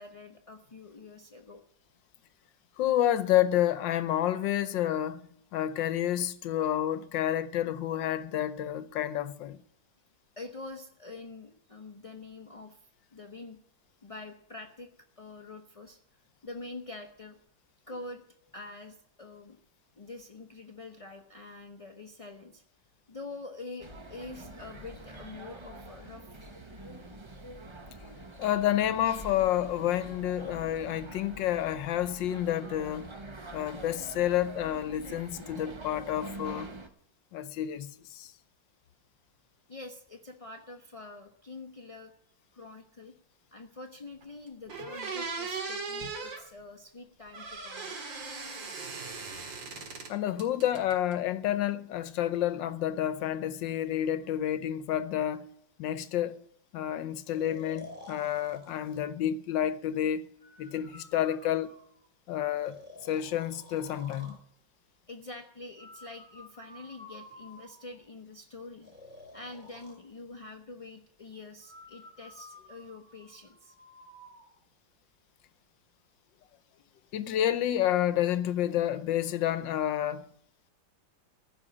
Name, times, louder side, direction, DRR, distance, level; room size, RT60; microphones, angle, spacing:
voice 1, 0.0-1.6 10.4-13.6 14.0-14.9 15.2-16.0 16.4-17.4 17.9-18.2 18.5-19.6 20.0-22.6 23.1-26.3 39.7-42.1 42.5-43.1 43.5-48.1 65.1-68.9 69.3-73.7, left 3 dB, 35° left, 0.5 m, -45 dB
voice 2, 2.8-9.6 28.4-33.1 33.5-36.7 37.3-38.3 49.8-55.4 55.8-56.4 56.7-60.3 60.6-61.7 62.3-64.4 77.1-80.2, left 11 dB, 80° left, 1.4 m, -29 dB
sound 1, 23.8-36.9, right 2 dB, 40° right, 0.4 m, -45 dB
sound 2, 44.2-44.3 44.7-46.4 47.3-50.1 50.4-51.1, right 4 dB, 80° right, 2.5 m, -38 dB
Breathing, 57.3-59.1 60.4-62.1 62.6-64.4 65.8-68.0 68.8-70.0 71.6-74.5, left 1 dB, 5° right, 3.2 m, -51 dB
15.0 x 5.5 x 9.9 m
omnidirectional pair, 2.0 m